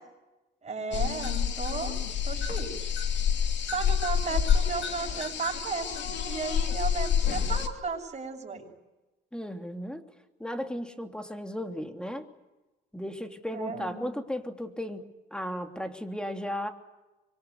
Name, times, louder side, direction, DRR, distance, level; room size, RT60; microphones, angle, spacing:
voice 1, 0.6-2.0 2.2-2.9 3.6-8.7 13.5-14.2, right 4 dB, 35° right, 2 dB, 7.7 m, -35 dB
sound 1, 0.9-7.7, left 8 dB, 65° left, 2.9 m, -28 dB
voice 2, 9.3-10.0 10.4-12.3 12.9-16.7, equal, 5° left, 5 dB, 3.1 m, -35 dB
26.0 x 23.5 x 9.6 m, 1.1 s
cardioid pair, 90°, 20 cm